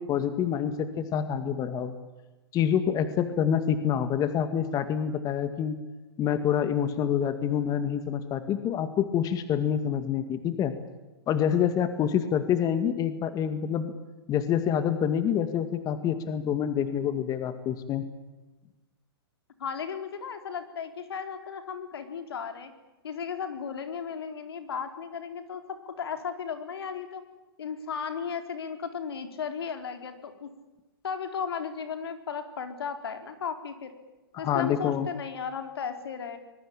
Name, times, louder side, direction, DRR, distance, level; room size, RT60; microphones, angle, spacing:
voice 1, 0.0-1.9 2.5-5.8 6.2-10.7 11.3-13.9 14.3-18.1 34.3-35.1, left 8 dB, 30° left, 10 dB, 2.0 m, -27 dB
voice 2, 19.6-22.7 23.0-27.2 27.6-30.5 31.0-33.9 34.4-36.4, left 6 dB, 75° left, 7 dB, 4.2 m, -35 dB
25.0 x 22.0 x 8.8 m, 1.1 s
hypercardioid pair, 120°, 13 cm